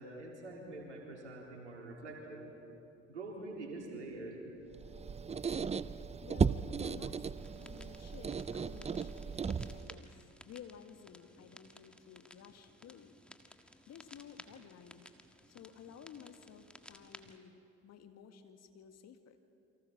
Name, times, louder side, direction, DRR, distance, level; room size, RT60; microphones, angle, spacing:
voice 1, 0.0-2.5 3.1-4.5, right 2 dB, 85° right, -1 dB, 3.9 m, -45 dB
Squeak, 4.7-10.0, right 6 dB, 20° right, 0.6 m, -36 dB
voice 2, 6.2-7.2 7.6-13.2 13.9-15.1 15.5-19.4, left 8 dB, 50° left, 7 dB, 2.0 m, -54 dB
sound 1, 7.4-17.4, left 1 dB, 5° left, 1.6 m, -58 dB
29.0 x 24.5 x 6.0 m, 2.7 s
figure-of-eight pair, 55°, 34 cm